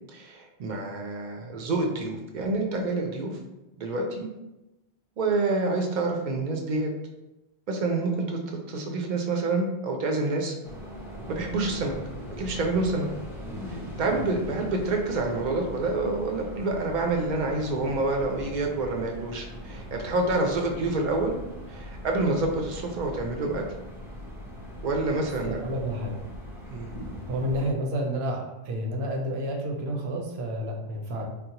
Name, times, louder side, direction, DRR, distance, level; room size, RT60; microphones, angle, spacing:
voice 1, 0.1-3.4 3.8-4.3 5.2-6.9 7.7-8.4 8.7-10.6 11.3-11.9 12.4-13.1 13.7-21.4 21.7-23.6 24.8-25.6 26.7-26.9, right 2 dB, 55° right, 2 dB, 0.6 m, -27 dB
sound 1, 10.6-27.7, equal, 5° right, 0.5 m, -40 dB
voice 2, 25.4-26.2 27.3-31.3, equal, 75° right, 0 dB, 0.9 m, -30 dB
3.8 x 2.0 x 2.8 m, 0.98 s
omnidirectional pair, 1.1 m